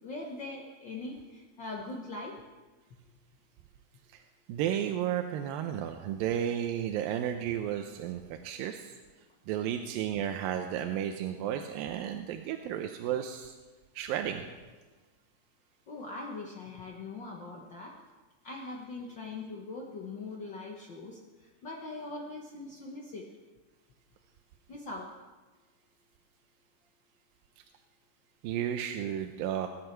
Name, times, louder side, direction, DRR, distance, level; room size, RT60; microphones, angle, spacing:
voice 1, 0.0-2.4 15.9-18.0 18.4-23.3 24.7-25.1, left 3 dB, 80° left, -1 dB, 1.0 m, -41 dB
voice 2, 4.5-8.9 9.5-13.5 14.0-14.5 28.4-29.7, right 10 dB, 90° right, 6 dB, 2.5 m, -33 dB
21.5 x 9.6 x 4.5 m, 1.3 s
omnidirectional pair, 4.0 m